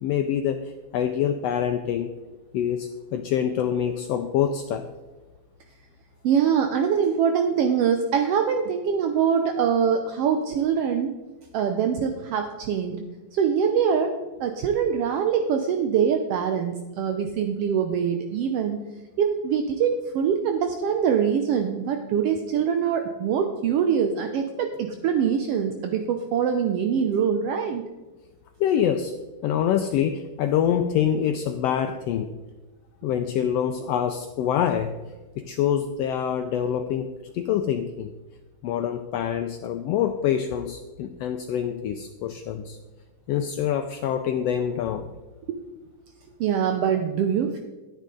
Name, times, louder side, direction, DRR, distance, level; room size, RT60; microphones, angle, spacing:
voice 1, 0.0-2.1 2.5-4.9 28.6-29.1 29.4-32.4 33.0-34.9 35.4-38.1 38.6-42.8 43.3-45.1, left 9 dB, 90° left, 7 dB, 1.4 m, -25 dB
voice 2, 6.2-11.1 11.5-13.0 13.3-14.1 14.4-18.8 19.2-27.8 45.5-45.6 46.4-47.6, right 7 dB, 80° right, 6 dB, 1.4 m, -24 dB
12.0 x 9.7 x 3.8 m, 1.2 s
omnidirectional pair, 3.4 m